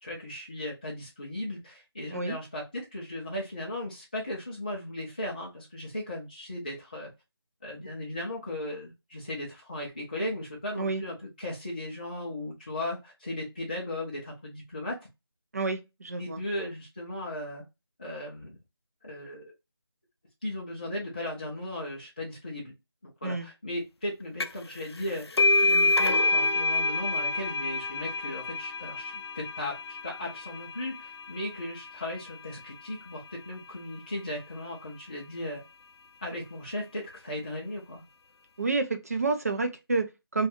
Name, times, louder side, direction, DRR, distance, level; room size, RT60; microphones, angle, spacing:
voice 1, 0.0-7.1 7.6-15.0 16.2-17.6 18.0-18.6 19.0-19.4 20.4-22.7 23.0-25.3 25.6-35.6 36.2-38.0, left 1 dB, 20° left, 0.4 m, -36 dB
voice 2, 15.5-16.4 23.2-23.5 38.6-40.5, right 3 dB, 40° right, 0.4 m, -29 dB
sound 1, 24.4-24.7 25.0-32.3, left 2 dB, 85° left, 0.4 m, -27 dB
2.5 x 2.3 x 2.7 m
figure-of-eight pair, 165°, 13 cm